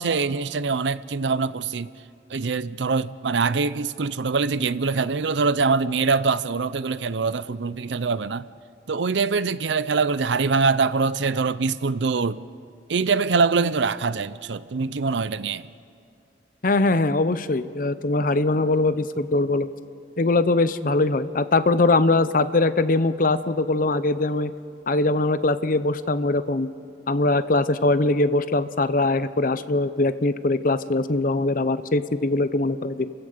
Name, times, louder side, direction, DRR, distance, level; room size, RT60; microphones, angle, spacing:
voice 1, 0.0-1.9 2.3-8.5 8.9-12.5 12.9-15.7, right 4 dB, 80° right, 0.6 m, -24 dB
voice 2, 16.6-19.7 20.2-24.5 24.9-26.7 27.1-33.1, left 2 dB, 50° left, 0.7 m, -22 dB
29.5 x 16.0 x 6.7 m
head